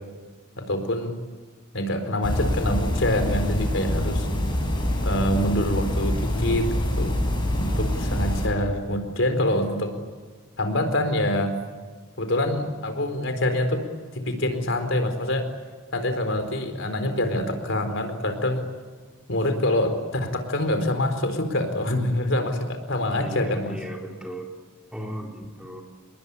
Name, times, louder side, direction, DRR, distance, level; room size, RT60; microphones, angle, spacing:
voice 1, 0.6-1.1 1.7-4.3 5.0-6.7 7.0-7.2 7.5-9.9 10.6-11.5 12.2-13.8 14.2-15.4 15.9-18.7 19.3-23.8, left 1 dB, 65° left, 7 dB, 4.5 m, -25 dB
sound 1, 2.2-8.5, left 1 dB, 25° left, 7.6 m, -25 dB
voice 2, 23.1-24.5 24.9-25.8, equal, 5° right, 0 dB, 4.2 m, -36 dB
29.0 x 22.0 x 8.4 m, 1.4 s
head